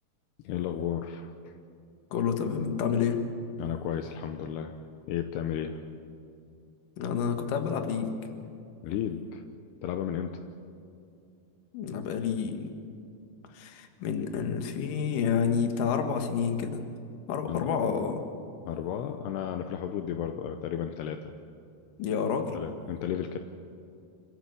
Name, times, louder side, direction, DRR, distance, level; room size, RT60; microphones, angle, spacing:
voice 1, 0.4-1.5 3.6-4.8 5.1-5.8 8.8-9.4 9.8-10.5 17.5-17.7 18.7-21.3 22.5-23.4, left 9 dB, 80° left, 6 dB, 2.8 m, -33 dB
voice 2, 2.1-3.2 7.0-8.1 11.7-12.7 13.5-16.8 17.3-18.2 22.0-22.6, left 7 dB, 60° left, 6 dB, 2.8 m, -29 dB
27.0 x 14.5 x 8.2 m, 2.6 s
omnidirectional pair, 5.0 m